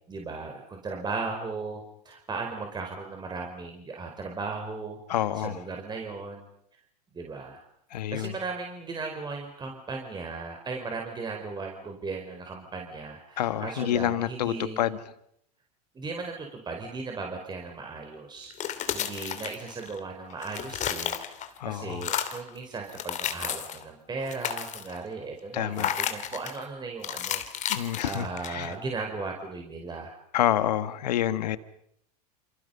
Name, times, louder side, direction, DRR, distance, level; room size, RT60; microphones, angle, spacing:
voice 1, 0.1-6.5 7.1-7.6 8.1-14.9 15.9-18.5 18.9-30.1, right 4 dB, 20° right, 2 dB, 4.6 m, -37 dB
voice 2, 5.1-5.6 7.9-8.3 13.4-15.0 21.6-22.0 25.5-25.9 27.7-28.7 30.3-31.6, left 12 dB, 80° left, 13 dB, 1.6 m, -28 dB
sound 1, 18.4-20.0 20.3-21.6 21.9-22.5 22.9-23.8 24.2-25.0 25.8-26.6 27.0-28.7, left 9 dB, 35° left, 2.8 m, -32 dB
29.0 x 28.5 x 5.5 m, 0.73 s
hypercardioid pair, 105°, 21 cm